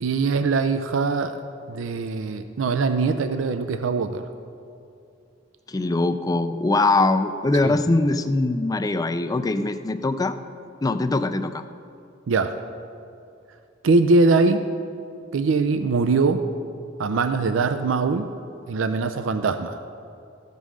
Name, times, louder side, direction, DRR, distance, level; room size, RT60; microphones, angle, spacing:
voice 1, 0.0-1.4 1.7-4.2 7.6-7.7 12.3-12.6 13.8-14.6 15.3-16.4 17.0-18.3 18.7-19.8, right 3 dB, 75° right, 9 dB, 0.4 m, -22 dB
voice 2, 5.7-10.3 10.8-11.6, left 2 dB, 20° left, 10 dB, 0.4 m, -22 dB
14.0 x 5.4 x 6.3 m, 2.5 s
head